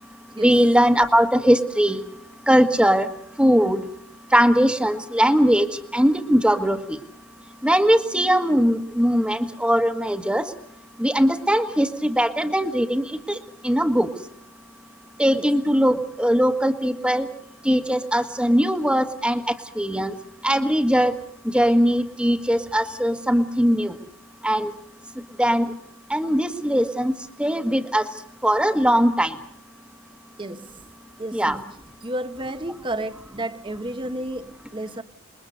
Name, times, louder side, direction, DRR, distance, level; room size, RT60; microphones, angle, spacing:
voice 1, 0.4-2.0 2.5-3.1 3.4-3.8 4.3-5.7 5.9-7.0 7.6-10.5 11.0-13.4 13.6-14.1 15.2-17.3 17.6-19.4 19.8-20.1 20.4-21.1 21.4-23.9 24.4-24.7 25.4-25.6 26.1-27.1 27.4-28.0 28.4-29.3 31.3-31.6, equal, 5° right, 1.5 m, -20 dB
voice 2, 30.4-30.7 31.2-31.8 32.0-35.0, right 1 dB, 25° right, 1.1 m, -32 dB
28.0 x 22.0 x 6.5 m
head